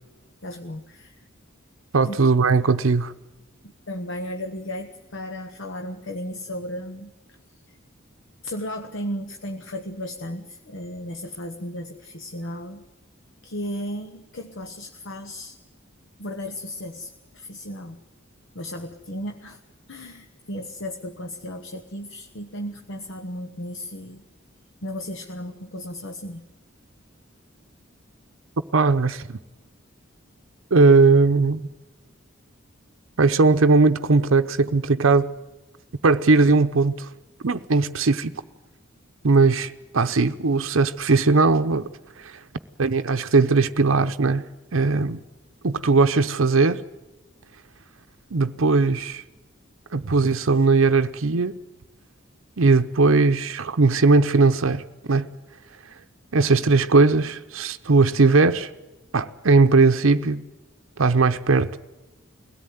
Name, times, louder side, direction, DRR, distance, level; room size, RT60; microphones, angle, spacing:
voice 1, 0.4-1.3 2.0-2.3 3.6-7.4 7.7-7.8 8.4-12.9 13.4-15.6 16.2-18.0 18.5-19.6 19.9-24.2 24.8-26.4, equal, 65° left, 1.1 m, -35 dB
voice 2, 1.9-3.1 28.7-29.4 30.7-31.6 33.2-35.4 36.0-37.1 37.4-38.3 39.2-41.9 42.2-42.3 42.8-44.4 44.7-45.2 45.6-46.8 48.3-49.2 49.9-51.6 52.6-54.8 55.1-55.3 56.3-58.7 59.1-60.4 61.0-61.8, right 3 dB, 75° right, 0.7 m, -19 dB
22.5 x 17.0 x 9.3 m
head